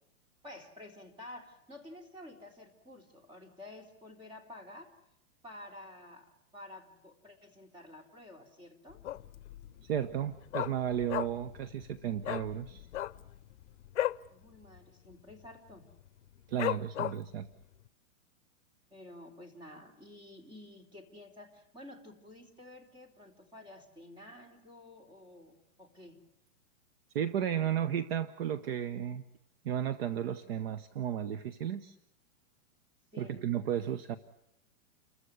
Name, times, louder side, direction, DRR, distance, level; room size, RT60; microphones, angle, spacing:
voice 1, 0.4-4.9 5.4-9.0 14.3-15.8 18.9-26.2 33.1-33.5, left 1 dB, 10° right, 3 dB, 3.3 m, -51 dB
sound 1, 8.9-13.9, left 12 dB, 35° left, 2.6 m, -55 dB
Dog, 9.0-9.5 9.8-9.9 10.1-11.6 11.8-11.9 12.2-12.5 12.8-14.3 14.6-14.8 15.0-15.5 15.9-16.0 16.6-17.4 17.9-18.0, left 13 dB, 55° left, 0.8 m, -34 dB
voice 2, 9.8-12.9 16.5-17.5 27.1-29.2 29.6-31.9 33.2-34.2, right 9 dB, 45° right, 13 dB, 1.0 m, -33 dB
29.5 x 15.0 x 9.7 m, 0.81 s
hypercardioid pair, 160°, 41 cm